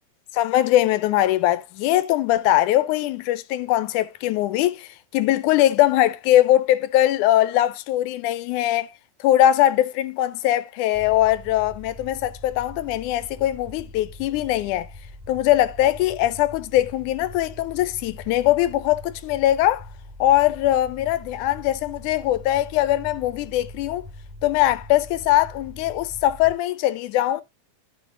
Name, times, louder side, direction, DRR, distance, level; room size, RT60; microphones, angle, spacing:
voice 1, 0.3-8.9 9.2-14.9 15.3-19.9 20.2-24.0 24.4-27.4, left 13 dB, 80° left, 1.9 m, -21 dB
sound 1, 10.9-26.5, left 1 dB, ahead, 0.6 m, -42 dB
12.5 x 5.0 x 3.7 m
omnidirectional pair, 3.8 m